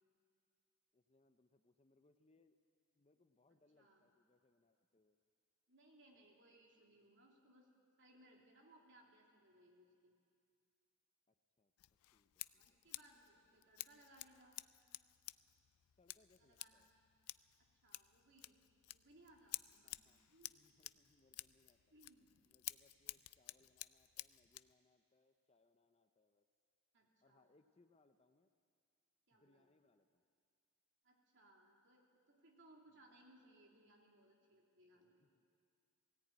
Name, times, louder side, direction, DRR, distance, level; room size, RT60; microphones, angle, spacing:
voice 1, 0.9-2.6 2.9-5.2 11.3-11.7 12.1-13.0 13.6-13.7 16.0-16.9 19.8-21.8 22.4-26.5 27.2-28.5 29.3-30.3 32.9-33.2 35.0-35.4, left 2 dB, 25° left, 9 dB, 0.6 m, -75 dB
voice 2, 5.7-7.7 8.0-10.1 12.5-14.6 16.4-16.8 17.8-18.6 18.9-20.6 21.9-22.3 26.9-27.5 29.3-29.7 31.0-35.3, right 1 dB, 55° right, -1 dB, 3.0 m, -67 dB
Scissors, 11.8-24.7, left 18 dB, 80° left, 0.4 m, -53 dB
18.0 x 17.0 x 9.3 m, 2.3 s
head